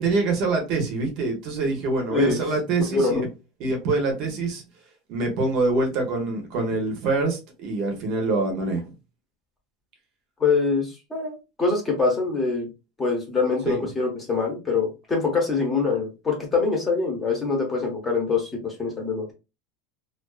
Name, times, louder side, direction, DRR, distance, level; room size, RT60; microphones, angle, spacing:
voice 1, 0.0-3.3 3.6-4.6 5.1-8.9 13.7-13.8, right 3 dB, 50° right, 0.7 m, -25 dB
voice 2, 10.4-12.7 13.0-19.3, left 4 dB, 15° left, 0.8 m, -24 dB
2.4 x 2.3 x 2.3 m
supercardioid pair, 155°, 0 cm